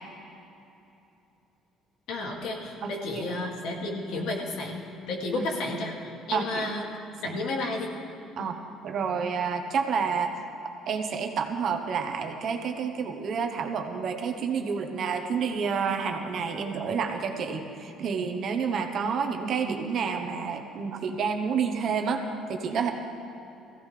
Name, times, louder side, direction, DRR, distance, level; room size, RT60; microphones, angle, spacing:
voice 1, 2.1-6.8 7.2-7.9 8.4-8.5, left 2 dB, 65° left, 0 dB, 2.3 m, -32 dB
voice 2, 2.8-3.3 5.3-5.5 6.3-6.7 8.4-8.6 8.8-10.4 10.9-22.2 22.5-22.9, right 6 dB, 40° right, 5 dB, 1.0 m, -29 dB
21.5 x 16.0 x 3.3 m, 2.9 s
cardioid pair, 175°, 0 cm